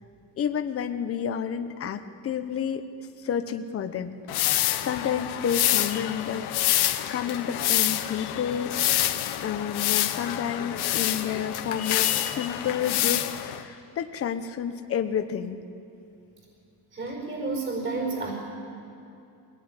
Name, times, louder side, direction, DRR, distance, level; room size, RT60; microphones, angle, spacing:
voice 1, 0.4-2.8 3.2-4.2 4.5-6.5 7.1-8.9 9.4-13.3 13.6-15.6, left 8 dB, 35° left, 7 dB, 1.0 m, -30 dB
sound 1, 4.3-13.6, left 13 dB, 80° left, 1.3 m, -27 dB
voice 2, 16.9-18.3, right 3 dB, 30° right, 1 dB, 4.8 m, -30 dB
23.0 x 18.5 x 9.8 m, 2.7 s
cardioid pair, 160°, 39 cm